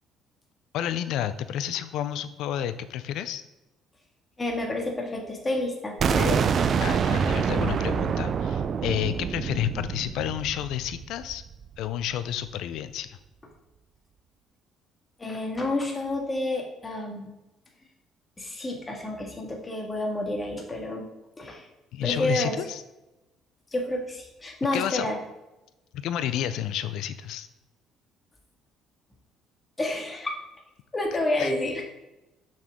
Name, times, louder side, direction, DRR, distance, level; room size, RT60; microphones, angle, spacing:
voice 1, 0.7-3.4 6.8-11.4 11.8-13.2 21.9-22.8 24.7-25.1 25.9-27.5 31.4-31.5, left 11 dB, 75° left, 13 dB, 0.5 m, -30 dB
voice 2, 4.4-6.7 15.2-17.3 18.4-21.1 21.4-21.7 22.0-22.6 23.7-25.2 29.8-30.4 30.9-31.8, left 1 dB, 25° left, 1 dB, 1.8 m, -29 dB
sound 1, 6.0-11.8, right 6 dB, 50° right, 0.4 m, -26 dB
6.3 x 6.2 x 3.6 m, 0.97 s
supercardioid pair, 85°, 0 cm